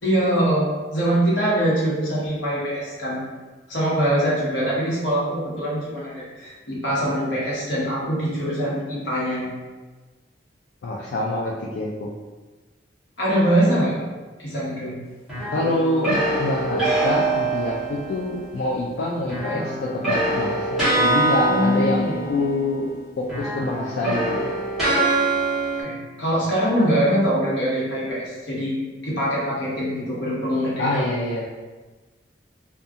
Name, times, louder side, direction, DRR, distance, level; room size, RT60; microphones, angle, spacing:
voice 1, 0.0-3.2 3.7-9.5 13.2-14.0 14.4-14.9 21.4-22.2 25.8-28.7 29.0-31.1, equal, 80° left, -7 dB, 1.0 m, -23 dB
voice 2, 10.8-12.1 15.5-22.9 23.2-24.5 30.8-31.5, left 2 dB, 65° left, -3 dB, 0.3 m, -26 dB
sound 1, 15.3-18.4 19.3-23.0 23.2-25.8, right 2 dB, ahead, 1.2 m, -24 dB
2.7 x 2.3 x 2.4 m, 1.3 s
head